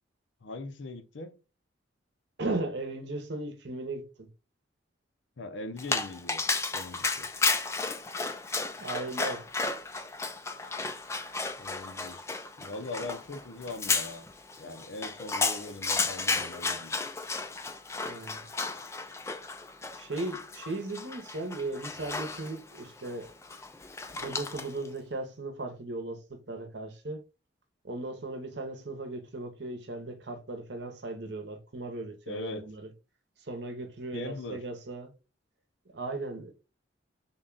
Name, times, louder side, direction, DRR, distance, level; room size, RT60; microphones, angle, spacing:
voice 1, 0.4-1.4 5.4-6.4 6.7-7.3 11.6-12.2 12.6-14.3 14.6-16.9 32.3-32.7 34.1-34.6, left 2 dB, 75° left, 0.6 m, -40 dB
voice 2, 2.4-4.3 8.8-9.4 17.9-18.4 20.0-23.3 24.1-27.2 27.8-32.9 33.4-35.1 35.9-36.5, right 2 dB, 60° right, 0.8 m, -37 dB
Dog, 5.8-24.9, left 4 dB, 15° left, 0.3 m, -33 dB
3.7 x 2.3 x 3.8 m
head